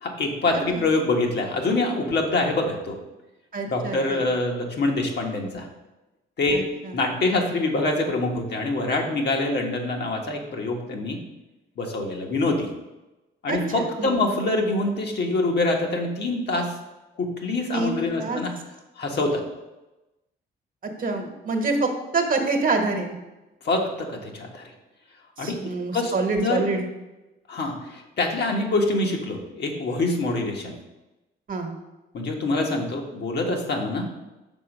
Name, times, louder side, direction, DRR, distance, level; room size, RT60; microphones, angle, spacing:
voice 1, 0.0-3.0 3.7-5.7 6.4-6.6 6.9-11.2 11.8-12.7 13.4-16.7 17.2-18.6 19.0-19.4 23.6-24.7 25.4-25.6 25.9-26.7 27.5-30.7 32.1-34.1, left 2 dB, 55° left, 1 dB, 1.4 m, -25 dB
voice 2, 0.5-0.8 3.5-4.3 6.5-7.0 13.5-14.2 17.7-18.4 21.0-23.1 25.4-26.9 31.5-31.7, right 3 dB, 45° right, 5 dB, 1.2 m, -27 dB
6.1 x 4.4 x 6.0 m, 1.0 s
cardioid pair, 90°, 20 cm